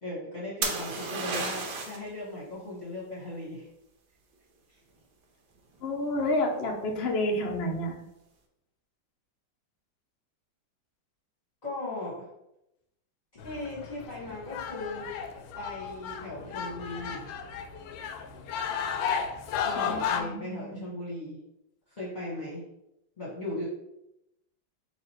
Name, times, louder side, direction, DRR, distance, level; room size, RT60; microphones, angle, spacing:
voice 1, 0.0-3.7 4.7-4.8 11.6-12.3 13.3-15.1 15.6-17.3 19.5-21.4 22.0-22.6 23.2-23.7, left 2 dB, 25° left, -7 dB, 1.2 m, -38 dB
sound 1, 0.6-2.1 5.7-6.2, right 4 dB, 70° right, 1.3 m, -32 dB
voice 2, 5.8-8.0 19.6-20.9, left 1 dB, 65° left, 2 dB, 0.6 m, -30 dB
sound 2, 13.4-20.2, left 7 dB, 80° left, 1.3 m, -34 dB
4.1 x 2.8 x 4.2 m, 0.86 s
omnidirectional pair, 2.0 m